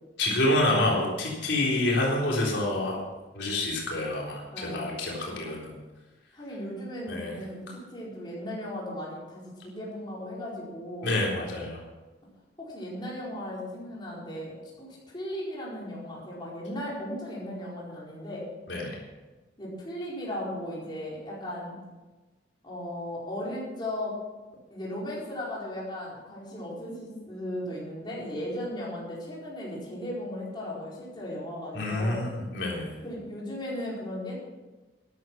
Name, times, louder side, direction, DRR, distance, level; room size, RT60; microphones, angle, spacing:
voice 1, 0.2-3.0 3.3-5.7 7.1-7.3 11.0-11.8 18.7-19.0 31.7-33.0, left 1 dB, 75° left, -3 dB, 3.8 m, -27 dB
voice 2, 4.5-4.8 5.2-5.6 6.3-11.1 12.6-18.5 19.6-21.8 22.6-24.2 24.7-32.2 33.0-34.4, left 1 dB, 25° left, -5 dB, 4.6 m, -36 dB
13.0 x 11.0 x 6.0 m, 1.2 s
head